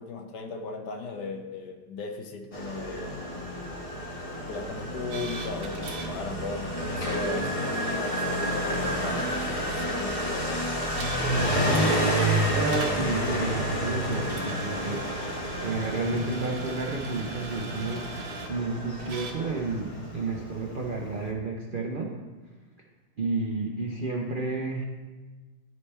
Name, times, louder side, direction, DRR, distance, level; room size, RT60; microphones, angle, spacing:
voice 1, 0.0-3.2 4.5-10.6, left 3 dB, 70° left, 3 dB, 1.4 m, -37 dB
Motorcycle, 2.5-21.3, equal, 35° left, 0.5 m, -30 dB
sound 1, 5.1-6.1 8.9-9.0 9.4-9.5 11.0-13.0 13.4-18.5 19.0-19.3, right 4 dB, 50° right, 0.8 m, -40 dB
voice 2, 12.5-22.1 23.2-24.8, right 3 dB, 80° right, 0 dB, 0.4 m, -31 dB
12.0 x 4.3 x 3.3 m, 1.3 s
omnidirectional pair, 1.9 m